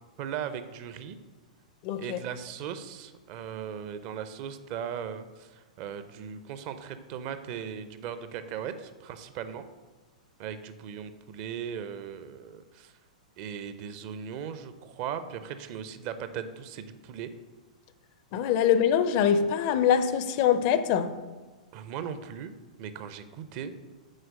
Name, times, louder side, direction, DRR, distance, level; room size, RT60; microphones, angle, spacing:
voice 1, 0.2-1.2 2.0-9.7 10.4-12.9 13.4-17.3 21.7-22.5 22.8-23.7, right 8 dB, 40° right, 0.5 m, -38 dB
voice 2, 1.8-2.2 18.3-21.2, left 8 dB, 40° left, 0.5 m, -24 dB
6.4 x 4.4 x 6.3 m
figure-of-eight pair, 100°, 4 cm